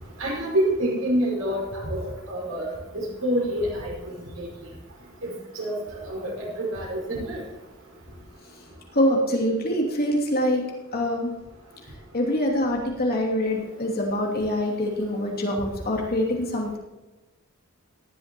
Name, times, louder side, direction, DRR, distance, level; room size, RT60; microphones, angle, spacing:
voice 1, 0.2-1.6 1.9-2.6 3.2-3.9 4.4-4.5 5.6-5.7 6.1-6.3 6.7-7.4, equal, 85° right, -4 dB, 5.3 m, -26 dB
voice 2, 8.9-10.6 10.9-11.3 12.1-16.8, left 1 dB, 50° left, -2 dB, 2.7 m, -24 dB
18.0 x 12.0 x 3.0 m, 1.1 s
head